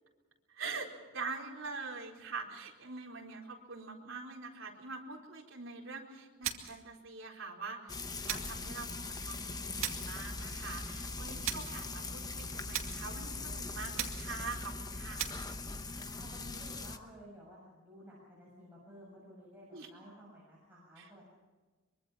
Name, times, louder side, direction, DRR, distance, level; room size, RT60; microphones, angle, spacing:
voice 1, 0.5-15.3 19.7-19.9 21.0-21.1, right 4 dB, 70° right, 0 dB, 4.3 m, -44 dB
sound 1, 6.4-6.9 8.3-8.6 9.8-10.2 11.4-11.8 12.7-13.1 14.0-14.4 15.2-15.5, right 10 dB, 90° right, 2.2 m, -38 dB
Frying (food), 7.9-17.0, left 3 dB, 20° left, 1.1 m, -41 dB
voice 2, 15.9-21.3, equal, 10° right, -6 dB, 6.6 m, -54 dB
24.0 x 24.0 x 5.8 m, 1.3 s
head